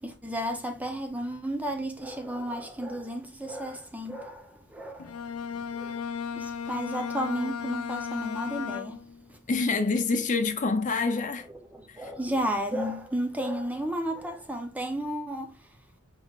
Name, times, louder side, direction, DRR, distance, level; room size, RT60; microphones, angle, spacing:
voice 1, 0.0-5.2 5.7-6.0 6.4-9.0 11.5-15.5, equal, 5° right, 0.6 m, -33 dB
Bowed string instrument, 5.0-9.3, left 6 dB, 90° left, 0.5 m, -35 dB
voice 2, 9.5-11.5 12.0-12.1, left 3 dB, 35° left, 0.5 m, -26 dB
6.0 x 3.6 x 2.4 m
head